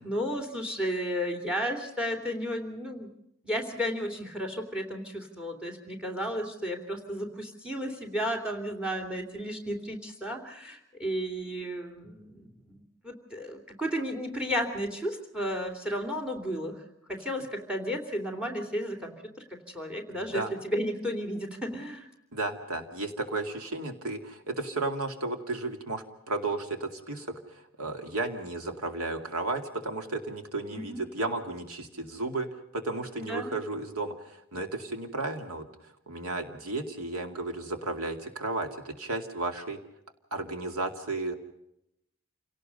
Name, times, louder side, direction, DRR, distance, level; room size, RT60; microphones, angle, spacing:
voice 1, 0.0-3.1 3.4-16.8 17.1-19.1 19.7-22.1 30.7-31.0 33.2-33.5, equal, 5° right, 4 dB, 3.0 m, -33 dB
voice 2, 20.1-20.5 22.3-35.7 36.1-39.8 40.3-41.3, right 2 dB, 85° right, 6 dB, 2.5 m, -33 dB
28.5 x 18.0 x 5.4 m, 0.80 s
head